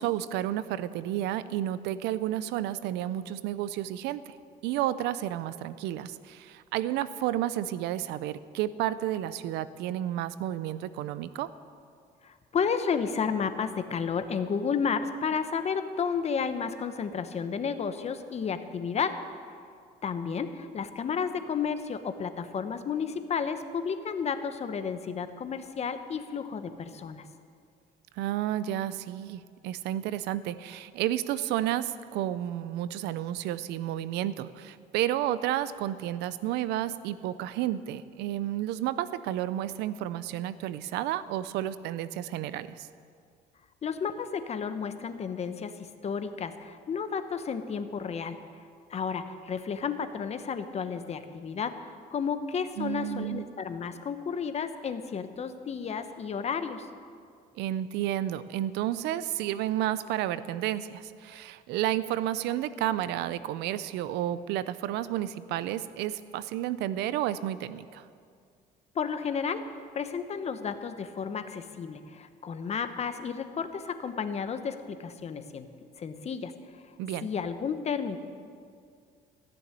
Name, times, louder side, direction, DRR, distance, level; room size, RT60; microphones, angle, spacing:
voice 1, 0.0-4.3 4.6-11.5 28.2-42.9 52.8-53.5 57.6-68.0 77.0-77.3, right 12 dB, 90° right, 15 dB, 0.6 m, -31 dB
voice 2, 12.2-19.1 20.0-27.3 43.8-48.3 48.9-56.9 68.9-75.7 76.0-76.5 77.2-78.2, left 6 dB, 40° left, 10 dB, 1.0 m, -32 dB
15.5 x 7.0 x 9.8 m, 2.2 s
cardioid pair, 110°, 17 cm